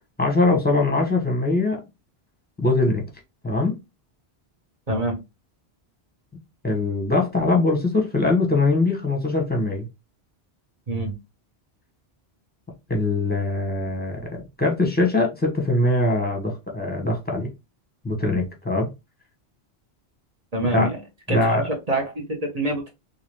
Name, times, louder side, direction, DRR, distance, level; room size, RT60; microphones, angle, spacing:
voice 1, 0.2-1.8 2.6-3.0 3.4-3.8 6.6-9.9 12.9-14.2 14.6-17.5 18.0-18.9 20.7-20.9 21.3-21.6, left 2 dB, 10° left, 1.1 m, -22 dB
voice 2, 4.9-5.2 10.9-11.2 20.5-21.0 21.3-21.4 21.6-22.9, right 1 dB, 40° right, 1.1 m, -26 dB
3.8 x 2.6 x 3.1 m
omnidirectional pair, 1.1 m